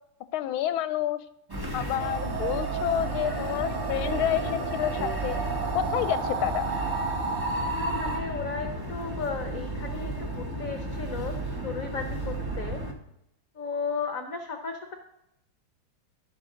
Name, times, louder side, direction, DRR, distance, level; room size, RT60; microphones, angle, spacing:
voice 1, 0.3-1.2 1.7-5.4 5.7-6.7, left 12 dB, 80° left, 13 dB, 1.4 m, -29 dB
sound 1, 1.5-12.9, right 2 dB, 15° right, 0.9 m, -33 dB
sound 2, 2.0-8.2, right 4 dB, 80° right, 2.1 m, -32 dB
sound 3, 5.0-10.0, right 1 dB, 45° right, 1.9 m, -48 dB
voice 2, 7.7-11.3 11.6-12.8 13.5-15.0, left 5 dB, 55° left, 5 dB, 1.0 m, -34 dB
17.0 x 6.0 x 3.8 m, 0.81 s
omnidirectional pair, 2.4 m